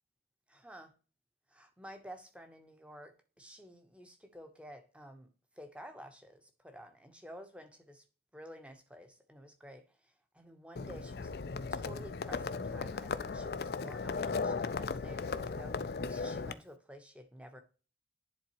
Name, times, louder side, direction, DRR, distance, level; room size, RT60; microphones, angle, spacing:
voice 1, 0.5-0.9 1.5-5.3 5.6-8.0 8.3-9.9 10.3-11.3 11.7-15.8 16.1-17.6, equal, 5° right, 0.9 m, -51 dB
Livestock farm animals working animals, 10.8-16.5, left 4 dB, 55° left, 0.4 m, -36 dB
10.5 x 3.9 x 3.0 m
head